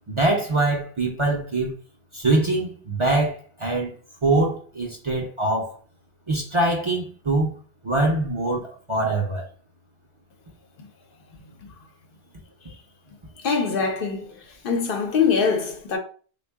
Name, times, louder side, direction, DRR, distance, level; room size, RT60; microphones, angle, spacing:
voice 1, 0.1-1.7 2.1-3.9 4.2-5.8 6.3-7.6 7.8-9.4, right 2 dB, 35° right, 0.6 m, -23 dB
voice 2, 13.4-14.3 14.6-16.0, left 5 dB, 65° left, 0.8 m, -23 dB
3.5 x 2.2 x 3.4 m
omnidirectional pair, 1.1 m